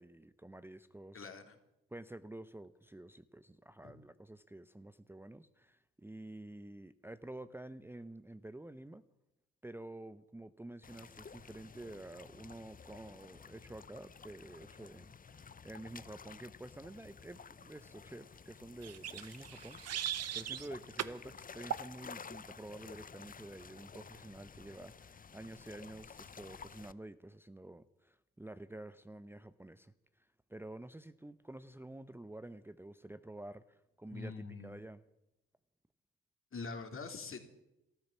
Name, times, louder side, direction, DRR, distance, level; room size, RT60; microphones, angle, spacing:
voice 1, 0.0-1.3 1.9-9.0 9.6-35.0, right 1 dB, 10° right, 11 dB, 0.8 m, -50 dB
voice 2, 1.1-1.6 34.1-34.7 36.5-37.5, left 4 dB, 45° left, 6 dB, 3.0 m, -44 dB
sound 1, 10.8-26.9, left 6 dB, 30° left, 0.8 m, -53 dB
sound 2, 18.8-20.7 21.0-21.2 21.7-21.9, right 10 dB, 55° right, 1.0 m, -39 dB
14.0 x 13.5 x 7.2 m, 0.88 s
hypercardioid pair, 50°, 30 cm